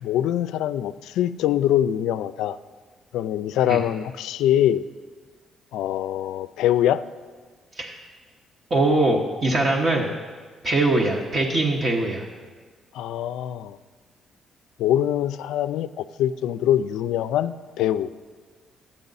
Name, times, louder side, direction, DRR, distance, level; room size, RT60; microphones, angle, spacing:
voice 1, 0.0-2.6 3.1-4.8 5.7-7.0 12.9-13.8 14.8-18.1, left 11 dB, 90° left, 13 dB, 0.3 m, -23 dB
voice 2, 8.7-10.1 10.6-12.3, right 2 dB, 45° right, -1 dB, 1.1 m, -22 dB
12.0 x 8.8 x 4.0 m, 1.5 s
cardioid pair, 90°, 0 cm